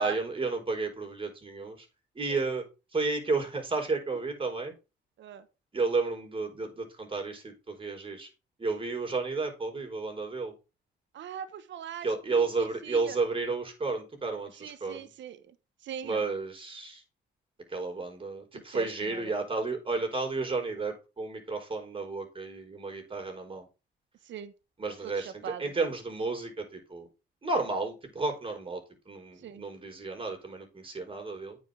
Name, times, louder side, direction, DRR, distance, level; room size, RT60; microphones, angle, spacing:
voice 1, 0.0-1.8 2.1-2.6 2.9-4.7 5.7-8.3 8.6-10.5 12.0-15.1 16.0-17.0 17.7-23.7 24.8-25.3 25.6-27.1 27.4-31.6, right 3 dB, 25° right, 3 dB, 4.7 m, -32 dB
voice 2, 11.1-13.2 14.5-16.2 18.5-19.4 24.2-24.5 25.0-25.9 29.4-29.6, right 8 dB, 70° right, 11 dB, 1.2 m, -41 dB
9.1 x 5.5 x 5.3 m, 0.29 s
cardioid pair, 90°, 20 cm